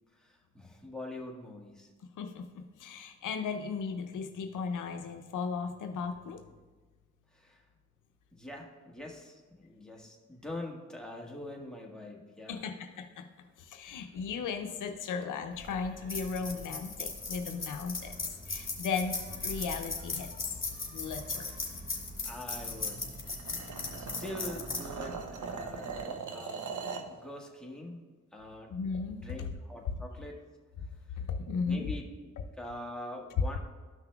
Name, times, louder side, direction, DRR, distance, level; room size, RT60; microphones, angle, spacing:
voice 1, 0.1-1.9 7.3-7.7 8.3-12.6 21.4-21.6 22.2-23.1 23.9-25.2 25.5-26.7 27.1-28.1 28.3-28.7 29.1-30.4 31.1-31.2 31.6-32.3 32.6-33.6, left 1 dB, ahead, -1 dB, 1.5 m, -44 dB
voice 2, 2.2-6.4 12.5-13.3 13.6-18.1 18.5-19.2 19.4-20.3 20.9-21.5 28.7-29.2 31.2-31.9, left 5 dB, 85° left, 6 dB, 0.6 m, -36 dB
sound 1, 15.5-26.0, left 3 dB, 40° left, 2.0 m, -38 dB
sound 2, 22.8-27.1, right 5 dB, 75° right, 0.7 m, -40 dB
13.0 x 5.8 x 2.3 m, 1.3 s
cardioid pair, 55°, 30 cm